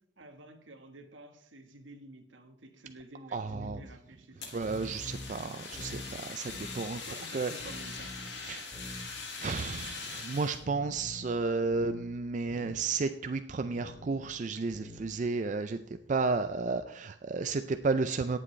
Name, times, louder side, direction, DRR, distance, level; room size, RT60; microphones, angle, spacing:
voice 1, 0.2-4.6 7.0-8.1, right 1 dB, 80° right, 6 dB, 1.3 m, -51 dB
voice 2, 3.3-3.8 4.5-7.0 7.3-7.5 8.4-8.7 9.4-15.8 16.1-18.4, right 4 dB, 40° right, 9 dB, 0.4 m, -32 dB
sound 1, 3.5-3.8 4.6-5.3 5.7-6.1 6.5-6.8 7.6-8.3 8.7-9.0 9.5-9.8 10.6-11.3 11.7-12.1 12.5-12.8 13.6-14.3 14.7-15.1, left 1 dB, 5° left, 4.8 m, -45 dB
Fire, 4.4-10.6, left 4 dB, 60° left, 2.2 m, -42 dB
18.0 x 7.6 x 3.2 m, 0.73 s
head